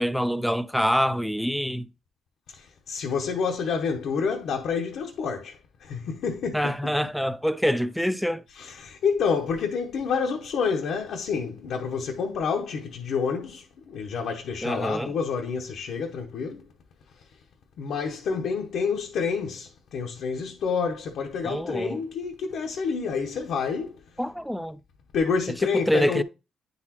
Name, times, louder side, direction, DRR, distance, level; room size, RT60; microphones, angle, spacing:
voice 1, 0.0-1.9 6.5-8.4 14.6-15.1 21.4-22.0 24.2-24.8 25.6-26.2, equal, ahead, 0.4 m, -26 dB
voice 2, 2.5-6.9 8.6-16.7 17.8-24.0 25.1-26.2, left 5 dB, 75° left, 0.8 m, -28 dB
9.4 x 4.0 x 2.9 m
cardioid pair, 90°, 0 cm